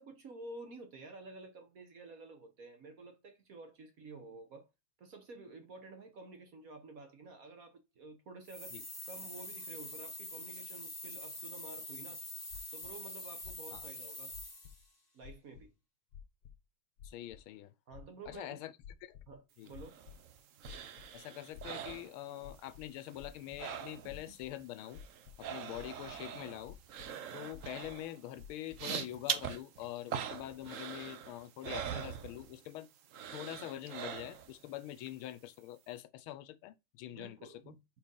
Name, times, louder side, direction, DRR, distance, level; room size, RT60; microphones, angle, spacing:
voice 1, 0.0-4.7 5.0-8.8 9.1-12.2 12.7-14.3 15.1-15.7 17.9-18.6 19.3-20.0 37.1-37.8, right 3 dB, 50° right, 1.2 m, -51 dB
sound 1, 8.4-14.9, left 2 dB, 15° left, 1.0 m, -45 dB
sound 2, 12.5-12.9 13.4-13.9 14.3-14.9 15.2-15.7 16.1-16.6 17.0-17.4 17.9-18.4 18.8-19.3 19.7-20.2 20.6-21.2 21.5-22.0 22.4-23.6 24.1-24.5 24.9-25.5 25.7-26.2 26.6-27.1 27.5-28.0 28.4-28.8, left 8 dB, 55° left, 1.3 m, -52 dB
voice 2, 17.0-17.7 18.3-18.7 19.0-19.2 19.6-19.7 21.1-25.0 25.4-26.8 27.3-32.9 33.3-37.8, left 14 dB, 85° left, 1.5 m, -45 dB
sound 3, 19.7-22.7 23.0-24.3 24.6-32.8 33.1-34.6 35.0-35.1, right 8 dB, 75° right, 0.7 m, -43 dB
4.8 x 4.5 x 5.3 m
omnidirectional pair, 2.3 m